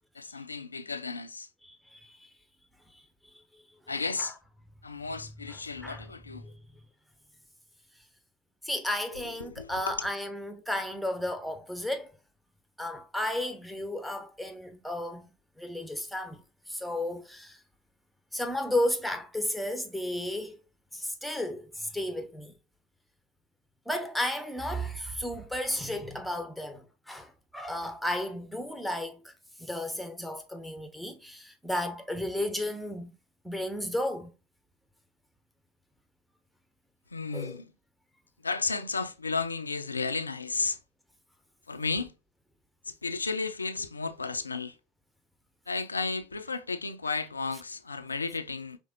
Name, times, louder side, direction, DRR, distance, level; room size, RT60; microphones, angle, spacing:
voice 1, 0.1-1.5 3.9-4.4 4.8-6.5 9.1-10.1 37.1-37.7 38.4-40.8 41.7-42.1 42.9-44.8 45.7-48.8, left 4 dB, 85° left, 0.4 m, -33 dB
voice 2, 1.6-2.3 4.2-4.3 5.8-6.1 6.4-6.5 8.6-12.1 12.8-15.3 15.6-16.4 16.7-17.6 18.3-20.6 20.9-22.5 23.9-29.3 29.6-33.1 33.4-34.3 37.3-37.6, left 1 dB, ahead, 0.9 m, -33 dB
5.1 x 3.4 x 2.5 m
figure-of-eight pair, 75°, 0 cm